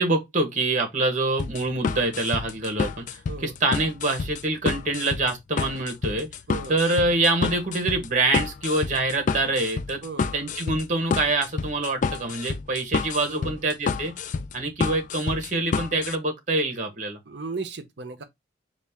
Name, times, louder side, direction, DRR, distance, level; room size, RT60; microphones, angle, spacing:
voice 1, 0.0-6.3 6.7-10.0 10.3-14.1 14.5-17.2, right 2 dB, 40° right, 1.1 m, -25 dB
sound 1, 1.4-16.2, left 5 dB, 45° left, 0.3 m, -29 dB
voice 2, 3.3-3.6 6.5-6.8 10.0-10.4 13.3-13.6 17.3-18.2, right 4 dB, 65° right, 0.7 m, -36 dB
4.1 x 2.5 x 3.5 m
head